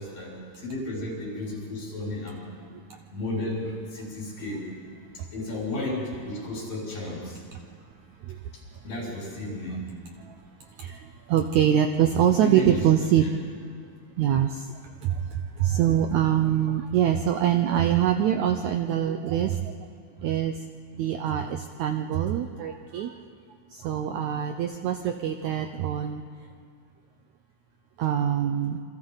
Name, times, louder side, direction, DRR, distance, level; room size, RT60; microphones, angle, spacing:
voice 1, 0.0-2.4 3.1-4.6 5.1-7.4 8.8-9.8 12.4-12.8, left 2 dB, 75° left, -5 dB, 7.8 m, -33 dB
voice 2, 11.3-13.3 14.2-14.6 15.0-19.6 20.2-20.6 21.0-23.1 23.7-26.2 28.0-28.8, right 10 dB, 80° right, 6 dB, 1.7 m, -24 dB
27.5 x 26.5 x 4.0 m, 2.2 s
omnidirectional pair, 4.2 m